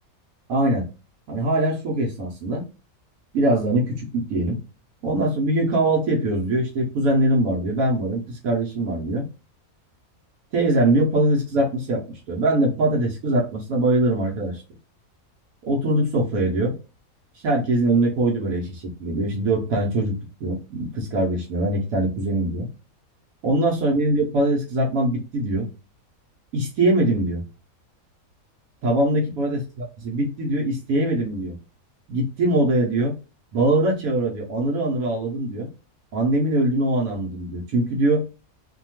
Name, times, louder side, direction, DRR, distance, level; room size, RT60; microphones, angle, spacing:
voice 1, 0.5-0.8 1.3-2.6 3.3-4.6 5.0-9.3 10.5-14.6 15.7-16.8 17.3-22.7 23.4-25.7 26.5-27.4 28.8-31.5 32.1-33.1 33.5-35.7 36.1-38.2, right 1 dB, 80° right, -2 dB, 1.1 m, -22 dB
2.8 x 2.2 x 2.8 m, 0.31 s
omnidirectional pair, 1.5 m